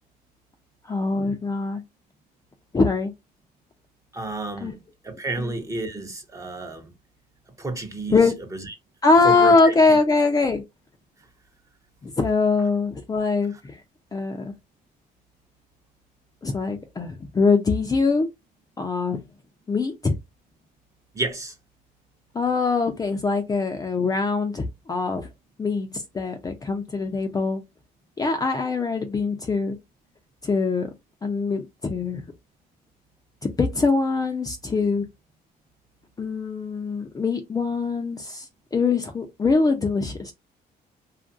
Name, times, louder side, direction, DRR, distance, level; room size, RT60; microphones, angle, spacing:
voice 1, 0.9-1.8 2.7-3.1 4.6-4.8 5.4-5.6 8.1-8.3 9.0-10.6 12.0-13.8 14.1-14.5 16.4-18.3 18.8-19.2 19.7-20.2 22.3-25.3 25.6-27.6 28.2-29.8 30.4-30.9 31.2-32.2 33.4-35.1 36.2-38.5 38.7-40.3, left 4 dB, 20° left, 0.5 m, -23 dB
voice 2, 4.1-4.8 5.0-6.9 7.6-8.2 8.5-8.6 9.2-9.7 21.1-21.5, right 2 dB, 20° right, 0.8 m, -30 dB
2.8 x 2.4 x 2.6 m
cardioid pair, 110°, 17 cm